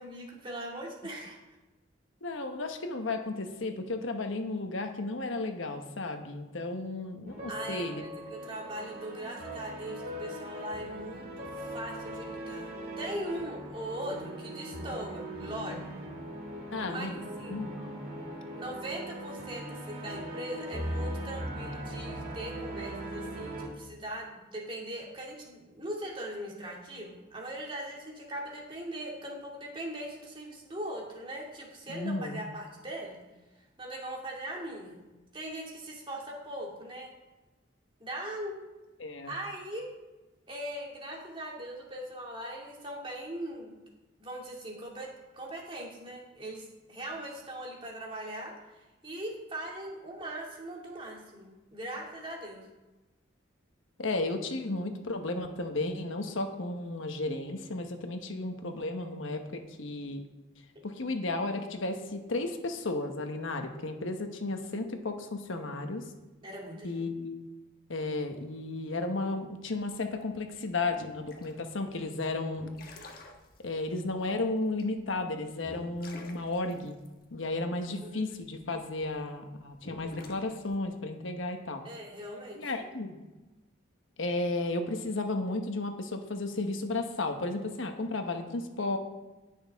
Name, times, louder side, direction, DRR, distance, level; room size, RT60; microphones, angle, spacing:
voice 1, 0.0-1.4 7.5-15.9 16.9-17.1 17.4-17.7 18.5-33.2 33.8-35.0 35.3-37.1 38.0-38.6 39.3-39.9 40.5-43.7 44.2-48.5 49.0-52.6 66.4-67.1 77.8-78.2 81.8-82.7, right 1 dB, 25° right, -2 dB, 2.3 m, -40 dB
voice 2, 2.2-8.0 16.7-17.2 17.5-18.0 31.9-32.4 39.0-39.3 54.0-60.2 60.8-66.1 66.8-67.4 67.9-72.7 73.6-77.0 77.3-81.8 82.6-83.2 84.2-89.0, left 2 dB, 85° left, 5 dB, 1.1 m, -33 dB
sound 1, 7.3-23.7, right 1 dB, 50° right, 2.1 m, -40 dB
sound 2, 69.7-79.1 79.7-80.8, left 2 dB, 45° left, 1.3 m, -48 dB
19.0 x 6.5 x 3.6 m, 1.1 s
head